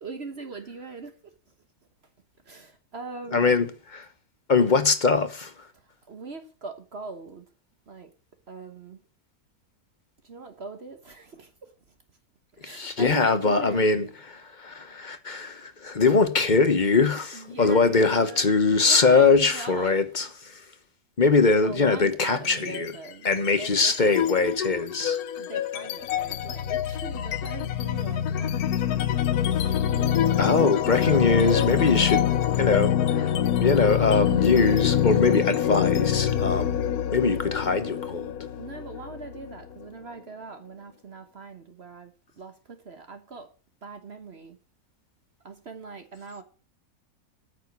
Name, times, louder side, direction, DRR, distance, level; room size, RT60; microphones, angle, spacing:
voice 1, 0.0-1.3 2.5-3.5 6.1-7.4 7.9-8.1 8.5-9.0 10.2-11.7 12.5-14.1 17.3-19.9 21.6-23.3 23.6-24.4 25.4-29.0 29.5-30.3 31.0-31.8 38.6-43.5 43.8-44.6 45.4-46.4, right 4 dB, 50° right, 1.2 m, -41 dB
voice 2, 3.3-4.0 4.5-5.5 12.6-14.0 14.6-20.3 21.2-22.9 23.2-25.2 30.4-32.3 32.6-33.3 33.6-36.8 37.1-38.3, left 4 dB, 35° left, 1.0 m, -22 dB
sound 1, 22.4-22.9 23.2-39.8, left 10 dB, 85° left, 1.2 m, -25 dB
9.1 x 6.4 x 8.2 m
omnidirectional pair, 1.5 m